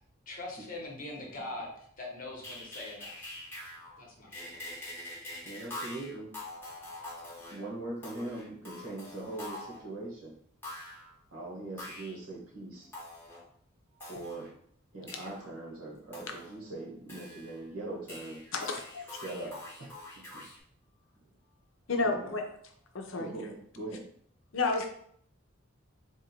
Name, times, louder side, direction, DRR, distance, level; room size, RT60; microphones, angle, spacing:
voice 1, 0.3-3.3 4.0-4.6, left 2 dB, 40° left, -2 dB, 1.1 m, -42 dB
sound 1, 2.4-4.0 4.3-9.9 10.6-11.1 11.8-12.2 12.9-13.4 14.0-14.5 15.1-15.5 16.1-16.7 17.1-17.8 18.1-20.6, left 1 dB, 10° left, 1.2 m, -45 dB
voice 2, 5.4-6.3 7.5-10.3 11.3-12.9 14.1-14.5 14.9-18.4 19.1-19.9 20.3-20.4 22.0-22.4 23.2-24.0, right 2 dB, 85° right, -3 dB, 1.5 m, -41 dB
voice 3, 18.5-19.0 21.9-22.4 22.9-23.3 24.5-24.9, left 3 dB, 65° left, 3 dB, 0.7 m, -30 dB
3.6 x 2.6 x 4.3 m, 0.64 s
head